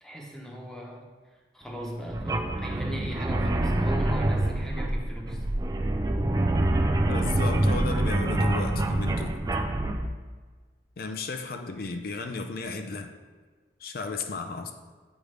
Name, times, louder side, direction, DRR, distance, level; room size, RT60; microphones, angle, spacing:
voice 1, 0.0-5.5, equal, 5° left, -2 dB, 0.9 m, -39 dB
sound 1, 2.1-10.1, right 1 dB, 20° right, 0.4 m, -26 dB
voice 2, 7.1-9.4 11.0-13.1 13.8-14.7, left 3 dB, 55° left, 5 dB, 0.5 m, -34 dB
8.0 x 5.0 x 3.3 m, 1.4 s
head